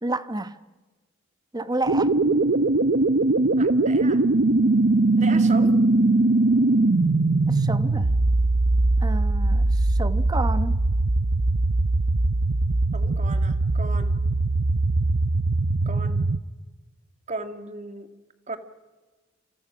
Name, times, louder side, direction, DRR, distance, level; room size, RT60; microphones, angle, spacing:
voice 1, 0.0-0.6 1.5-2.2 7.5-8.2 9.0-10.8, right 2 dB, 20° right, 1.0 m, -30 dB
sound 1, 1.9-16.4, right 2 dB, 55° right, 0.7 m, -21 dB
voice 2, 3.6-4.2 5.2-5.8 12.9-14.1 15.9-16.2 17.3-18.1 18.5-18.6, right 2 dB, 35° right, 1.9 m, -36 dB
28.5 x 28.5 x 6.2 m
head